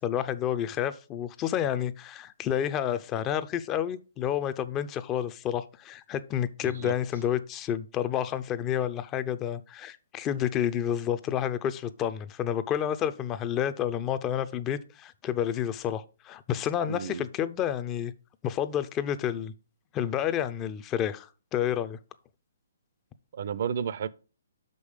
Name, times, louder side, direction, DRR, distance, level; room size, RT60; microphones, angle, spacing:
voice 1, 0.0-18.1 18.4-19.5 19.9-22.0, left 10 dB, 20° left, 0.6 m, -30 dB
voice 2, 6.6-6.9 16.9-17.3 23.3-24.1, right 7 dB, 55° right, 0.6 m, -32 dB
6.3 x 5.4 x 5.0 m
hypercardioid pair, 140°, 0 cm